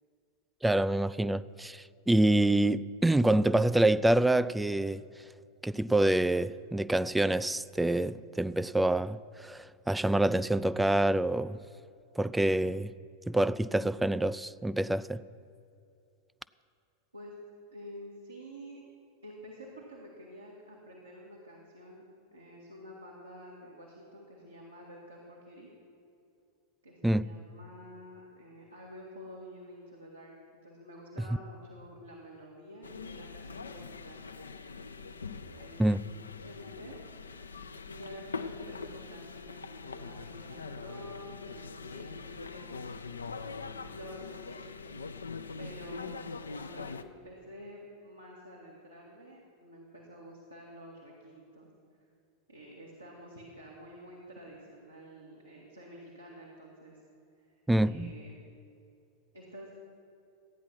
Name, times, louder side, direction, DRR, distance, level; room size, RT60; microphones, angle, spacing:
voice 1, 0.6-5.0 5.6-11.6 12.2-12.9 13.3-15.2 27.0-27.2 35.8-36.0 57.7-58.1, right 1 dB, 5° right, 0.3 m, -26 dB
voice 2, 17.7-18.8 19.2-22.1 22.3-25.7 26.8-30.3 30.6-34.2 35.3-37.0 37.9-42.8 43.6-44.9 45.6-51.7 52.5-57.0 57.8-58.4 59.3-59.7, equal, 85° right, 2.0 m, -49 dB
sound 1, 32.8-47.0, left 4 dB, 75° left, 0.5 m, -43 dB
14.5 x 9.4 x 6.0 m
figure-of-eight pair, 90°, 0 cm